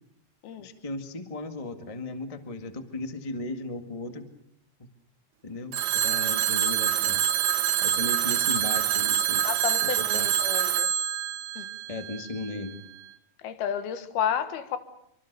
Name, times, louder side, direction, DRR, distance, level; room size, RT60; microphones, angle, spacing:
voice 1, 0.6-4.3 4.8-4.9 5.4-7.2 7.8-9.4 10.0-10.3 11.9-12.8, left 2 dB, 40° left, 7 dB, 0.5 m, -36 dB
Telephone, 5.7-12.5, right 10 dB, 80° right, 3.0 m, -26 dB
voice 2, 9.4-10.9 11.6-11.7 13.4-14.8, left 9 dB, 75° left, 10 dB, 3.4 m, -31 dB
26.5 x 24.5 x 6.8 m, 0.74 s
omnidirectional pair, 4.5 m